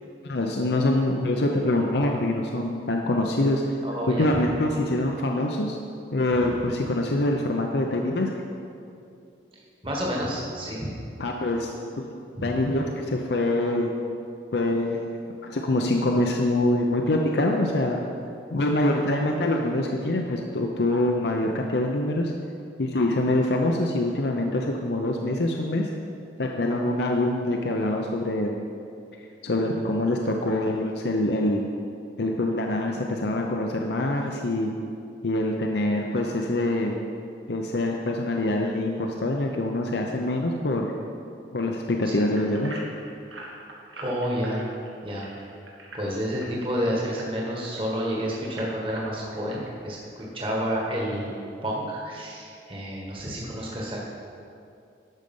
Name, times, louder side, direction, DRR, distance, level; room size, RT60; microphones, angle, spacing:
voice 1, 0.2-3.6 4.1-5.8 6.1-8.3 11.2-11.7 12.0-12.1 12.4-13.9 14.5-15.1 15.4-18.0 18.5-22.3 22.8-25.9 26.4-28.6 29.4-31.6 32.2-34.7 35.2-36.9 37.5-40.9 41.5-42.7, left 1 dB, 65° left, 1 dB, 0.7 m, -25 dB
voice 2, 3.8-4.3 6.3-6.5 9.8-10.9 12.4-12.6 42.1-42.2 44.0-44.7 45.0-45.5 45.9-51.3 51.6-54.0, equal, 30° right, -3 dB, 1.6 m, -30 dB
sound 1, 42.3-47.8 48.3-49.7 50.2-50.3 50.8-50.9, right 1 dB, 90° right, 1.9 m, -43 dB
12.0 x 6.5 x 5.4 m, 2.5 s
head